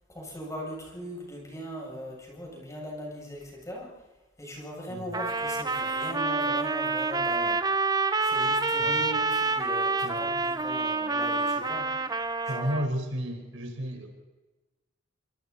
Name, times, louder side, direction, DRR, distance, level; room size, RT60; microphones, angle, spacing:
voice 1, 0.1-4.0 4.4-7.9 8.2-12.0 12.4-12.7, equal, 15° left, -2 dB, 7.8 m, -39 dB
Trumpet, 5.1-12.9, right 3 dB, 20° right, 1.0 m, -27 dB
voice 2, 12.5-14.1, equal, 80° right, 4 dB, 4.7 m, -32 dB
27.0 x 26.0 x 4.2 m, 1.2 s
head